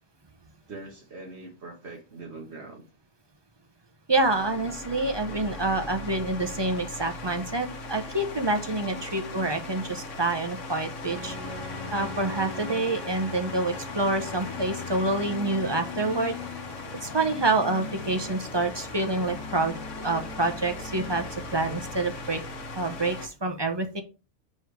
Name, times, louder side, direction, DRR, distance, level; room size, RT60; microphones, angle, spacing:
voice 1, 0.7-2.8 8.6-9.2 9.5-9.7, right 2 dB, 65° right, 0 dB, 1.4 m, -43 dB
sound 1, 4.1-23.3, left 2 dB, 85° left, 1.4 m, -39 dB
voice 2, 4.1-11.3 11.9-16.4 17.0-21.2 21.5-22.4 22.8-24.0, right 2 dB, 25° right, 5 dB, 0.7 m, -27 dB
sound 2, 11.0-22.7, left 4 dB, 20° left, 1.5 m, -40 dB
7.0 x 3.3 x 4.6 m, 0.32 s
omnidirectional pair, 1.2 m